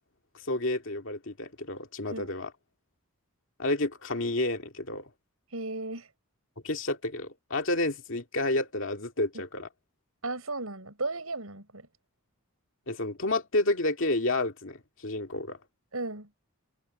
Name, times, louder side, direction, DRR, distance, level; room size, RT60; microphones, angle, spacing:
voice 1, 0.4-2.5 3.6-5.1 6.6-9.7 12.9-15.6, left 2 dB, 60° left, 2.4 m, -30 dB
voice 2, 5.5-6.1 10.2-11.9 15.9-16.3, right 2 dB, 75° right, 6.6 m, -35 dB
head